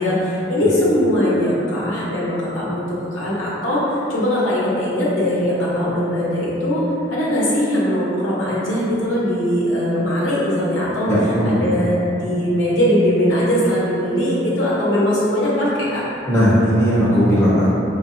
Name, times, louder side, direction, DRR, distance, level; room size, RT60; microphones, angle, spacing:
voice 1, 0.0-6.8 7.1-11.1 11.5-16.0, equal, 80° left, -8 dB, 0.9 m, -20 dB
voice 2, 11.1-11.6 16.3-17.7, equal, 15° left, -9 dB, 0.5 m, -16 dB
4.4 x 2.6 x 2.5 m, 3.0 s
head